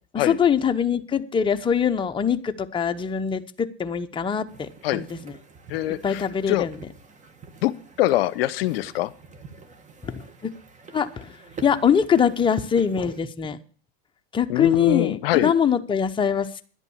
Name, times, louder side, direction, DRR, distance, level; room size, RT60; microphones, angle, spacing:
voice 1, 0.1-5.4 6.0-6.8 10.0-10.5 10.9-13.6 14.3-16.6, left 7 dB, 15° left, 7 dB, 0.9 m, -23 dB
sound 1, 4.5-13.2, right 5 dB, 20° right, 1.7 m, -46 dB
voice 2, 5.7-6.2 6.5-6.7 7.6-7.7 8.0-9.1 14.5-15.5, left 15 dB, 65° left, 16 dB, 0.8 m, -23 dB
10.5 x 8.1 x 7.2 m, 0.43 s
hypercardioid pair, 110°, 32 cm